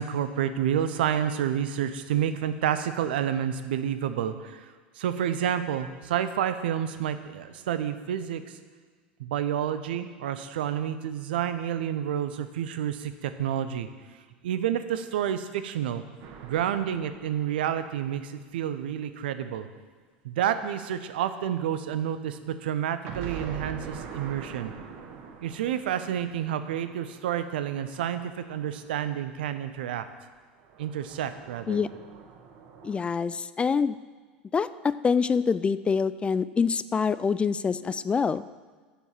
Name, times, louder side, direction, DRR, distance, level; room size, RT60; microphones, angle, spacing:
voice 1, 0.0-4.7 5.0-8.4 9.2-13.9 14.4-16.0 16.4-19.7 20.2-24.7 25.4-30.1 30.8-31.8 37.8-37.9, right 9 dB, 65° right, 10 dB, 0.7 m, -29 dB
sound 1, 16.2-19.0 23.1-29.3 30.6-33.0, right 6 dB, 50° right, 1.3 m, -44 dB
voice 2, 32.8-34.0 34.5-38.4, left 5 dB, 20° left, 15 dB, 0.3 m, -25 dB
7.1 x 7.1 x 7.3 m, 1.5 s
figure-of-eight pair, 80°, 6 cm